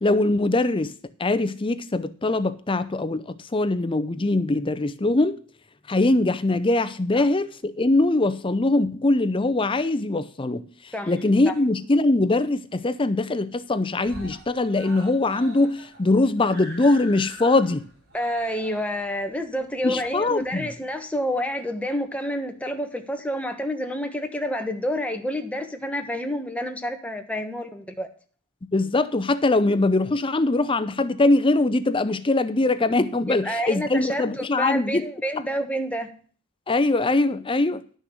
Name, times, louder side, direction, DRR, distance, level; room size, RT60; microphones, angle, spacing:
voice 1, 0.0-0.9 1.2-5.4 5.9-17.8 19.8-20.7 28.7-35.1 36.7-37.8, left 2 dB, 25° left, 0.5 m, -22 dB
Screaming, 11.3-12.0 12.4-12.5 12.8-12.9 13.2-13.7 14.0-20.8 21.6-21.7, right 1 dB, 45° right, 3.5 m, -44 dB
voice 2, 18.1-28.1 33.3-36.1, equal, 5° left, 1.3 m, -29 dB
11.5 x 6.4 x 6.4 m
head